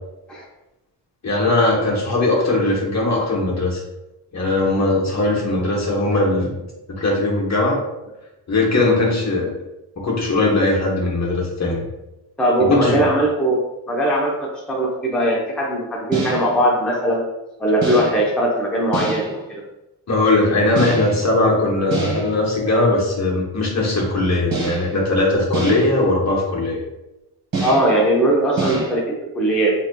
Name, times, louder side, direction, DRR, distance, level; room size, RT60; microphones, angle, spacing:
voice 1, 1.2-3.8 4.3-6.5 6.9-7.8 8.5-9.5 10.0-11.8 12.6-13.1 20.1-26.8, left 2 dB, 35° left, -2 dB, 1.0 m, -19 dB
voice 2, 12.4-13.6 13.9-17.2 17.6-19.6 27.6-29.7, right 1 dB, ahead, -4 dB, 0.7 m, -20 dB
sound 1, 16.1-16.6 17.8-18.3 18.9-19.4 20.8-21.3 21.9-22.5 24.5-25.0 25.5-26.0 27.5-28.0 28.6-29.0, right 3 dB, 50° right, 1.4 m, -26 dB
3.1 x 2.7 x 2.2 m, 0.95 s
supercardioid pair, 50°, 46 cm